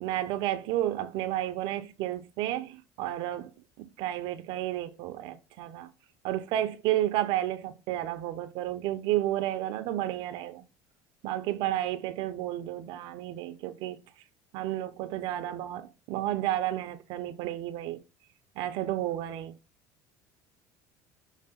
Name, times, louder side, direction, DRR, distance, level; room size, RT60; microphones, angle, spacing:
voice 1, 0.0-3.5 3.8-5.9 6.2-10.6 11.2-14.0 14.5-18.0 18.6-19.5, right 13 dB, 65° right, 0.7 m, -31 dB
6.6 x 3.3 x 5.2 m
supercardioid pair, 110°, 9 cm